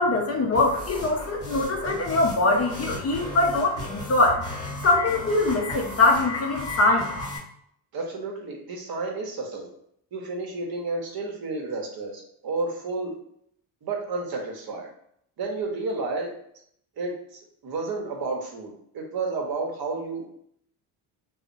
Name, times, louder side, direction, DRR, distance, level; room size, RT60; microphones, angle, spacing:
voice 1, 0.0-4.4 4.8-7.1, left 2 dB, 35° left, 1 dB, 0.4 m, -22 dB
sound 1, 0.5-7.4, left 2 dB, 10° left, 1.0 m, -35 dB
voice 2, 7.9-9.7 10.1-13.2 13.8-14.9 15.4-16.3 17.0-17.1 17.6-20.2, right 3 dB, 50° right, 0 dB, 0.8 m, -31 dB
2.6 x 2.0 x 2.5 m, 0.69 s
supercardioid pair, 80°, 48 cm